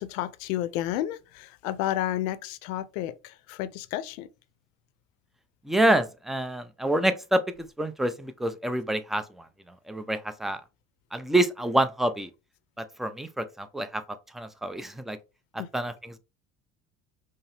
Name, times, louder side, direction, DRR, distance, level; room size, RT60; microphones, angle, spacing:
voice 1, 0.0-4.3 15.6-15.7, left 13 dB, 75° left, 0.6 m, -31 dB
voice 2, 5.6-9.5 9.9-10.6 11.1-12.3 13.0-14.0 14.3-15.2 15.7-16.2, right 1 dB, ahead, 0.3 m, -27 dB
5.3 x 2.0 x 3.2 m
hypercardioid pair, 65°, 40 cm